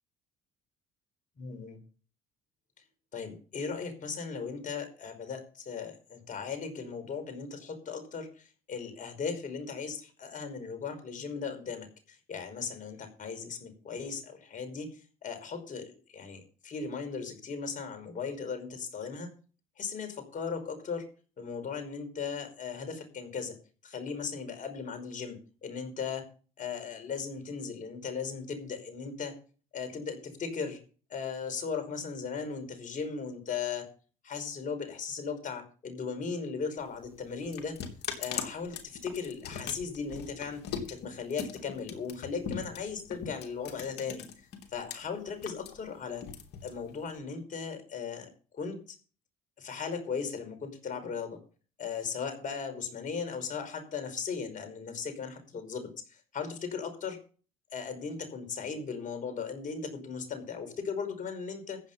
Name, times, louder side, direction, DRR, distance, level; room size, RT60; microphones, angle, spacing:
voice 1, 1.4-1.8 3.1-19.3 19.8-21.0 21.4-23.5 23.8-26.3 26.6-29.3 29.7-30.8 31.1-33.9 34.2-37.8 38.2-40.6 40.9-44.2 44.7-46.2 46.6-48.8 49.6-51.4 51.8-57.2 57.7-61.8, left 5 dB, 45° left, 8 dB, 5.2 m, -37 dB
sound 1, 36.8-44.9 45.3-47.2, left 7 dB, 70° left, 3.2 m, -40 dB
15.0 x 8.8 x 5.6 m, 0.38 s
supercardioid pair, 80°, 18 cm